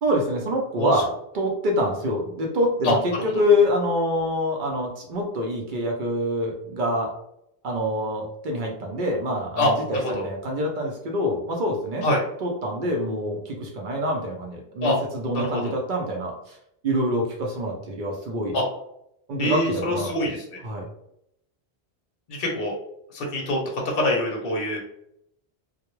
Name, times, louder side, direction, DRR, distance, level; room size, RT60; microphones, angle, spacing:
voice 1, 0.0-7.1 7.6-12.1 12.4-16.6 16.8-18.6 19.3-20.3 20.6-20.8, left 1 dB, 60° right, 0 dB, 0.6 m, -26 dB
voice 2, 2.8-3.2 9.6-10.2 12.0-12.2 14.8-14.9 15.3-15.7 18.5-18.6 19.4-20.6 22.3-22.8 23.1-23.6 23.9-24.8, left 1 dB, 55° left, -1 dB, 0.7 m, -25 dB
2.2 x 2.0 x 3.0 m, 0.76 s
omnidirectional pair, 1.1 m